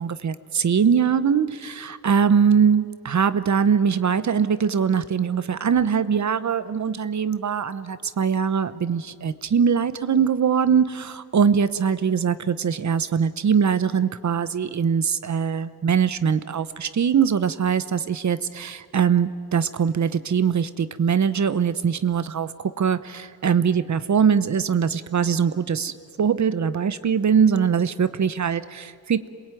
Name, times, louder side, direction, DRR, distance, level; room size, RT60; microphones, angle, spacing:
voice 1, 0.0-29.3, right 7 dB, 50° right, 13 dB, 1.0 m, -22 dB
27.5 x 21.5 x 9.2 m, 2.1 s
cardioid pair, 105°, 36 cm